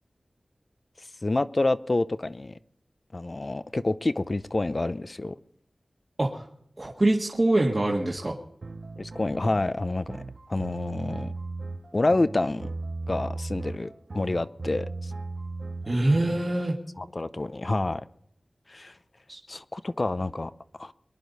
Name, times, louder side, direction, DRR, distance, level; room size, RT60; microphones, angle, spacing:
voice 1, 1.2-2.5 3.1-5.3 9.0-10.2 10.5-11.3 11.9-12.7 13.1-15.1 17.0-18.0 18.7-18.9 19.5-20.5 20.8-20.9, left 2 dB, 45° left, 0.6 m, -28 dB
voice 2, 6.8-8.4 15.8-16.7 19.3-19.4, right 1 dB, 40° right, 1.7 m, -24 dB
sound 1, 8.6-16.5, right 3 dB, 65° right, 0.8 m, -36 dB
23.5 x 10.5 x 4.1 m
wide cardioid pair, 75°, 0 cm